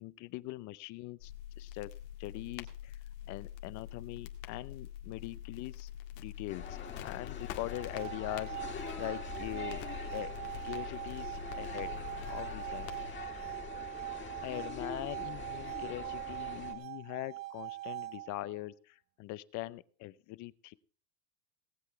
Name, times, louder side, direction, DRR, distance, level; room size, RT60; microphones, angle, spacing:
voice 1, 0.0-1.9 2.2-3.0 3.2-5.9 6.2-9.9 10.1-10.3 10.6-11.9 12.3-13.2 14.4-20.7, left 18 dB, 40° left, 19 dB, 0.6 m, -42 dB
sound 1, 1.2-13.1, left 11 dB, 75° left, 2.1 m, -45 dB
sound 2, 6.5-16.7, left 6 dB, 25° left, 2.1 m, -45 dB
sound 3, 7.6-18.6, right 17 dB, 90° right, 1.4 m, -42 dB
18.5 x 8.1 x 4.6 m, 0.41 s
supercardioid pair, 135°, 47 cm